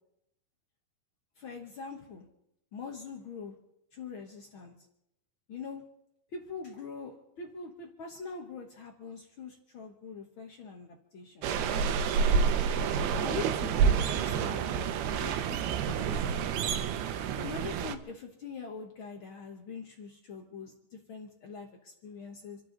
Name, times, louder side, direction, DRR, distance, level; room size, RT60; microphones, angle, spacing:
voice 1, 1.4-2.2 2.7-3.6 3.9-4.7 5.5-5.8 6.3-11.5 13.2-14.8 15.0-16.9 17.1-22.6, left 5 dB, 90° left, 3 dB, 1.1 m, -43 dB
Orkney Brough of Birsay A, 11.4-18.0, right 6 dB, 90° right, 2.9 m, -28 dB
27.5 x 12.5 x 4.0 m, 0.82 s
omnidirectional pair, 4.4 m